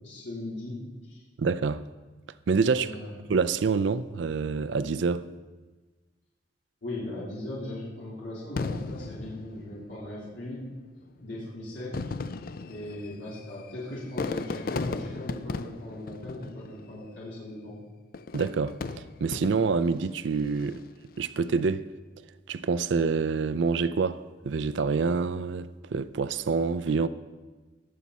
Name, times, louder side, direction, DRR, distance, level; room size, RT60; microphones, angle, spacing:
voice 1, 0.0-1.2 2.8-3.2 6.8-10.6 11.2-12.0 12.7-17.8, left 1 dB, 90° left, 3.7 m, -38 dB
voice 2, 1.4-1.8 2.5-2.9 3.3-5.3 18.3-18.8 19.2-20.8 21.2-21.8 22.5-27.1, right 5 dB, 80° right, 0.4 m, -26 dB
Fireworks, 8.6-10.2 11.0-11.1 11.8-17.1 18.1-19.9 20.5-21.0, left 4 dB, 50° left, 0.4 m, -36 dB
20.0 x 7.4 x 4.2 m
head